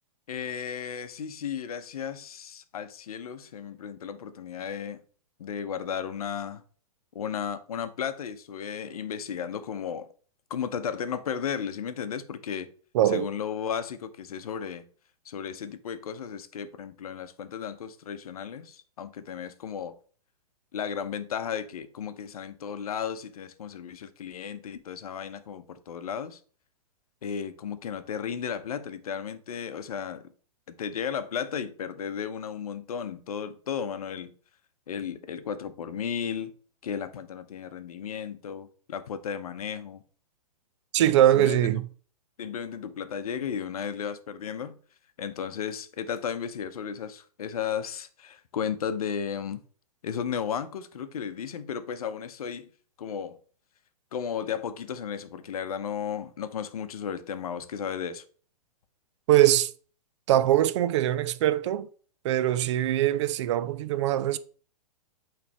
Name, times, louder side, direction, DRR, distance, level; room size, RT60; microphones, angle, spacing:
voice 1, 0.3-5.0 5.4-6.6 7.1-10.1 10.5-12.7 13.0-14.8 15.2-19.9 20.7-26.4 27.2-30.3 30.7-34.3 34.9-36.5 36.8-40.0 41.0-41.6 42.4-44.8 45.2-49.6 50.0-52.7 53.0-53.4 54.1-58.2, left 7 dB, 65° left, 0.8 m, -34 dB
voice 2, 12.9-13.3 40.9-41.9 59.3-59.7 60.3-61.9 62.2-64.4, right 13 dB, 45° right, 0.5 m, -22 dB
8.3 x 3.4 x 3.3 m
figure-of-eight pair, 110°, 20 cm